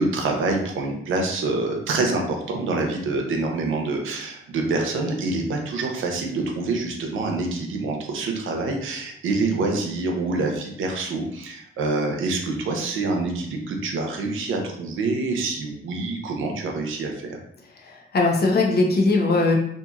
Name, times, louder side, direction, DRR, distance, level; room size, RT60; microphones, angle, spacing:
voice 1, 0.0-17.4, right 3 dB, 85° right, 2 dB, 0.6 m, -26 dB
voice 2, 17.8-19.6, left 3 dB, 55° left, -1 dB, 0.7 m, -20 dB
2.8 x 2.5 x 2.4 m, 0.70 s
cardioid pair, 70°, 20 cm